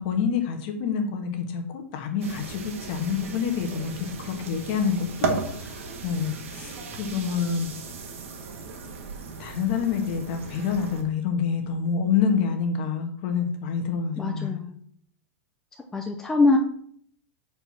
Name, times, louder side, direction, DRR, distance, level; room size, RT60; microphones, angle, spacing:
voice 1, 0.0-7.7 9.4-14.6, left 6 dB, 45° left, 4 dB, 1.4 m, -27 dB
sound 1, 2.2-11.0, right 4 dB, 75° right, 1.7 m, -36 dB
voice 2, 14.2-14.7 15.9-16.6, left 3 dB, 5° left, 1 dB, 0.5 m, -23 dB
6.7 x 4.7 x 5.7 m, 0.63 s
supercardioid pair, 170°, 7 cm